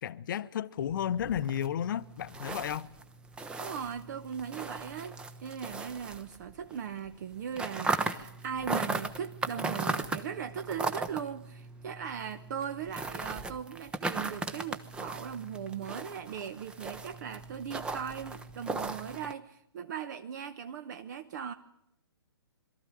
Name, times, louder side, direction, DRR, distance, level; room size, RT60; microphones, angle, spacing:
voice 1, 0.0-2.9, left 10 dB, 50° left, 0.8 m, -33 dB
sound 1, 0.8-6.8 7.0-19.3, right 3 dB, 5° right, 0.7 m, -37 dB
voice 2, 3.6-21.5, right 8 dB, 45° right, 0.8 m, -39 dB
22.0 x 13.5 x 9.9 m
hypercardioid pair, 145°, 14 cm